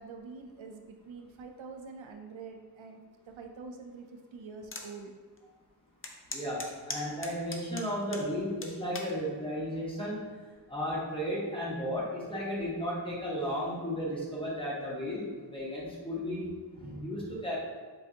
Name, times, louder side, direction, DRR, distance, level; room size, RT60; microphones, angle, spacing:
voice 1, 0.0-3.0 3.3-5.1, right 4 dB, 80° right, 4 dB, 0.6 m, -46 dB
sound 1, 4.7-4.9 5.4-5.5 6.0-8.3 8.6-9.1 9.8-10.2, left 3 dB, 30° left, 0.5 m, -39 dB
voice 2, 6.3-10.3 10.7-17.6, equal, 10° left, -6 dB, 1.2 m, -34 dB
7.5 x 2.5 x 2.7 m, 1.5 s
wide cardioid pair, 110°, 46 cm